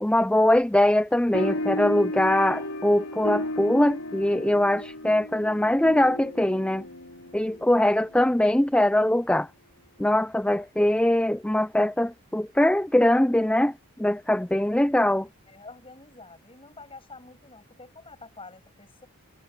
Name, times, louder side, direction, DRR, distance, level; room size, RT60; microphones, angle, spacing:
voice 1, 0.0-6.9 7.3-9.5 10.0-15.3, left 1 dB, 5° left, 0.4 m, -22 dB
sound 1, 1.3-8.2, left 1 dB, 80° left, 4.3 m, -34 dB
voice 2, 15.5-19.1, left 3 dB, 25° left, 8.0 m, -47 dB
head